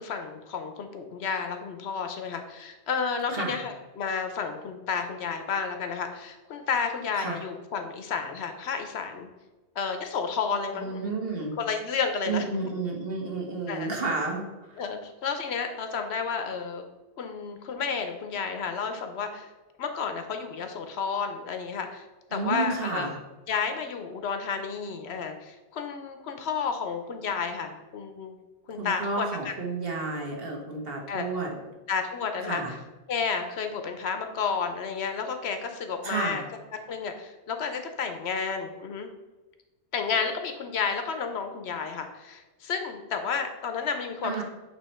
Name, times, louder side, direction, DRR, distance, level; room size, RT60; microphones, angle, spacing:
voice 1, 0.0-9.3 9.8-11.1 11.6-12.4 13.7-13.9 14.8-16.9 17.2-19.5 19.8-22.0 22.3-23.1 23.5-28.4 28.7-29.5 31.1-31.3 31.9-32.8 33.1-36.4 36.9-39.1 39.9-44.4, left 5 dB, 70° left, 6 dB, 0.9 m, -31 dB
voice 2, 3.3-3.6 7.2-7.4 10.7-11.5 12.2-14.8 22.3-23.1 28.7-31.6 32.4-32.7 36.0-36.4 44.2-44.4, right 3 dB, 55° right, -1 dB, 1.4 m, -31 dB
8.1 x 3.0 x 4.3 m, 1.1 s
omnidirectional pair, 1.2 m